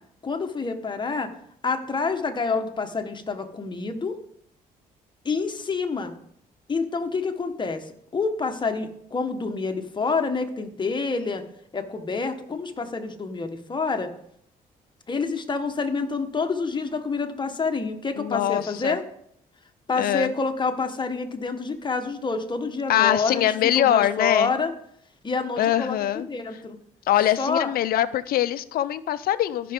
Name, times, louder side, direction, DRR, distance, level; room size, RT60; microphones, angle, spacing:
voice 1, 0.2-1.3 1.6-4.2 5.2-6.1 6.7-7.8 8.1-11.4 11.7-14.1 15.1-19.0 19.9-24.7 25.2-26.8 27.4-27.7, left 4 dB, 30° left, 5 dB, 1.3 m, -27 dB
voice 2, 18.2-19.0 20.0-20.3 22.9-24.5 25.6-26.2 27.1-29.7, left 12 dB, 70° left, 14 dB, 0.5 m, -23 dB
14.5 x 5.9 x 3.6 m, 0.70 s
cardioid pair, 85°, 16 cm